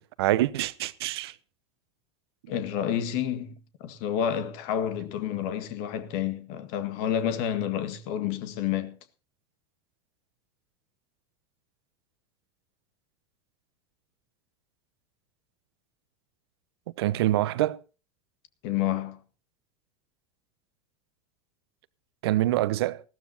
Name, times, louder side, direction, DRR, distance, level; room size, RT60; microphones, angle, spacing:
voice 1, 0.2-1.3 17.0-17.8 22.2-23.0, right 15 dB, 70° right, 0.9 m, -25 dB
voice 2, 2.5-9.0 18.6-19.2, left 10 dB, 60° left, 1.7 m, -29 dB
19.5 x 15.0 x 2.8 m
hypercardioid pair, 90°, 14 cm